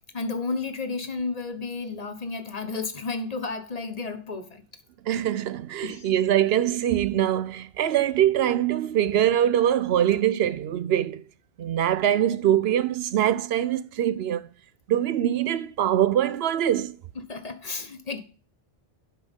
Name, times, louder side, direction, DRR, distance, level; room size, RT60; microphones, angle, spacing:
voice 1, 0.1-4.6 5.8-6.1 17.3-18.2, left 4 dB, 40° left, 1.0 m, -32 dB
voice 2, 5.1-11.2 11.6-14.5 14.9-17.0, right 11 dB, 80° right, 0.8 m, -23 dB
11.0 x 5.7 x 3.5 m
omnidirectional pair, 1.0 m